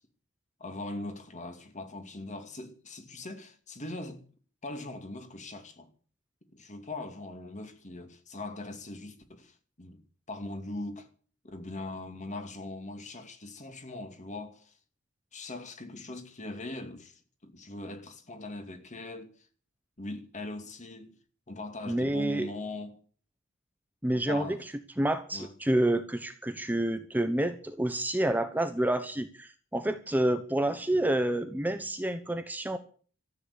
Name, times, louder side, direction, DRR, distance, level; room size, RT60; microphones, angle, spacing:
voice 1, 0.6-4.2 4.6-5.9 6.5-10.0 10.3-11.1 11.4-14.7 15.3-19.4 20.0-21.1 21.5-23.0 24.1-24.6 25.3-25.5, left 2 dB, 35° left, 2.5 m, -41 dB
voice 2, 21.9-22.5 24.0-24.6 25.0-32.8, right 1 dB, 10° right, 1.0 m, -28 dB
14.0 x 9.2 x 10.0 m
head